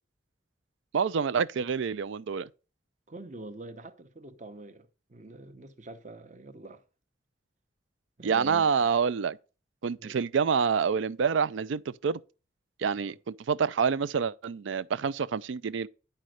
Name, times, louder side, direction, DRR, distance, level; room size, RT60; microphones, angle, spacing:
voice 1, 0.9-2.5 8.2-9.4 9.8-12.2 12.8-13.1 13.5-15.9, right 6 dB, 80° right, 0.4 m, -27 dB
voice 2, 3.1-6.8 8.2-8.9 10.0-10.1 13.0-13.2, right 2 dB, 40° right, 0.8 m, -45 dB
10.5 x 4.3 x 6.3 m
head